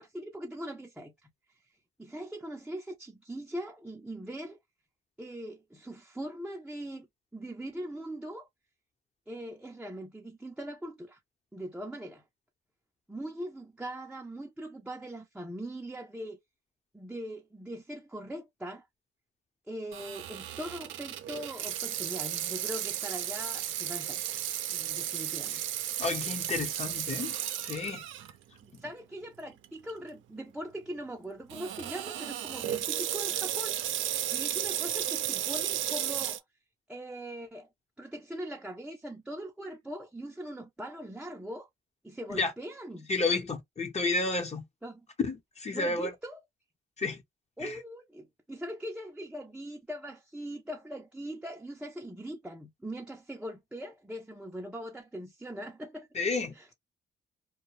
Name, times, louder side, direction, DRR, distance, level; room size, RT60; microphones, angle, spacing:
voice 1, 0.0-1.7 2.0-4.6 5.2-7.1 7.3-8.5 9.3-11.2 11.5-12.2 13.1-16.4 16.9-18.9 19.7-24.4 24.7-25.6 28.6-34.0 34.3-36.4 36.9-37.7 38.0-41.7 42.0-43.1 44.8-45.1 45.7-46.4 47.6-56.1 56.5-56.7, right 1 dB, 5° right, 0.6 m, -41 dB
Water tap faucet / Sink (filling or washing), 19.9-28.3 28.8-28.9 29.6-29.9 31.5-36.4, right 11 dB, 80° right, 0.6 m, -34 dB
voice 2, 26.0-28.0 42.3-42.5 43.1-44.6 45.2-46.1 47.0-47.2 47.6-47.8 56.1-56.7, left 3 dB, 35° left, 0.9 m, -31 dB
2.3 x 2.2 x 3.0 m
cardioid pair, 90°, 20 cm